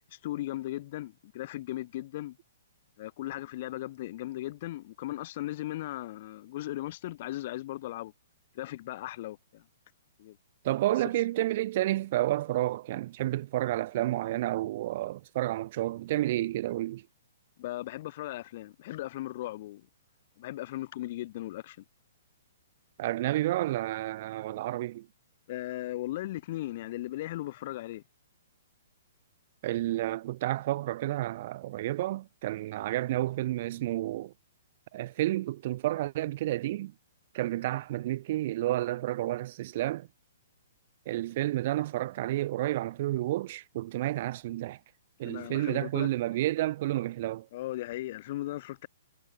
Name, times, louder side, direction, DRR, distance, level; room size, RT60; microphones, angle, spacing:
voice 1, 0.0-2.4 3.0-8.1 8.5-9.6 10.2-10.4 17.6-19.9 20.4-21.8 25.5-28.0 45.2-46.1 47.5-48.9, left 15 dB, 50° left, 1.3 m, -37 dB
voice 2, 10.6-17.0 23.0-25.1 29.6-34.3 34.9-36.9 37.3-40.1 41.0-44.8 45.2-47.5, right 15 dB, 50° right, 1.2 m, -30 dB
hypercardioid pair, 135°, 0 cm